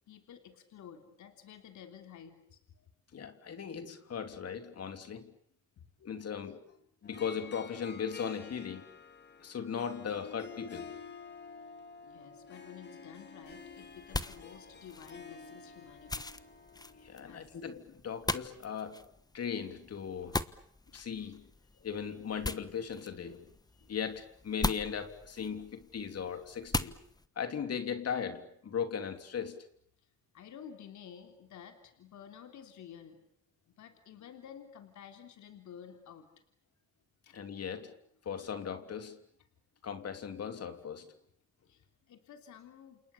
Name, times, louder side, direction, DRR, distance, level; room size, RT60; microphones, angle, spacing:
voice 1, 0.1-2.6 4.3-4.4 5.8-5.9 12.0-16.3 17.3-17.6 30.0-30.1 30.3-33.2 33.7-36.4 37.3-37.4 39.0-39.1 41.7-43.1, left 8 dB, 70° left, 3.4 m, -52 dB
voice 2, 3.1-5.3 6.0-6.6 7.0-8.9 9.4-10.9 17.0-19.0 19.3-20.4 20.9-21.5 21.8-23.5 23.9-26.9 27.3-29.6 37.3-37.9 38.2-39.2 39.8-41.1, left 7 dB, 55° left, 3.3 m, -38 dB
Harp, 7.0-17.4, left 5 dB, 35° left, 3.6 m, -50 dB
sound 1, 13.4-27.3, left 2 dB, 15° left, 1.2 m, -41 dB
29.0 x 28.0 x 7.1 m
cardioid pair, 90°, 30 cm